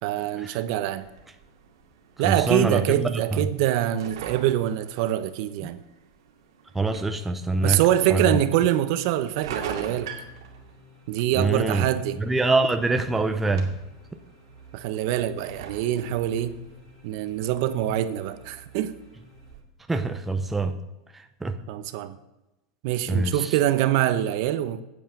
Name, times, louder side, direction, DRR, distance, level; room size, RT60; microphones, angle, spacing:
voice 1, 0.0-1.0 2.2-5.8 7.6-10.1 11.1-12.2 14.7-16.6 17.0-18.9 21.7-22.2 22.8-24.8, right 12 dB, 55° right, 0.9 m, -24 dB
sound 1, 1.0-19.6, right 6 dB, 85° right, 2.2 m, -44 dB
voice 2, 2.2-3.4 6.7-7.8 8.1-8.4 11.3-11.8 12.2-13.7 19.9-20.8 21.1-21.6 23.1-23.5, right 3 dB, 5° right, 0.6 m, -25 dB
sound 2, 8.5-19.5, right 2 dB, 40° left, 2.5 m, -52 dB
9.4 x 8.1 x 6.6 m
supercardioid pair, 150°, 2 cm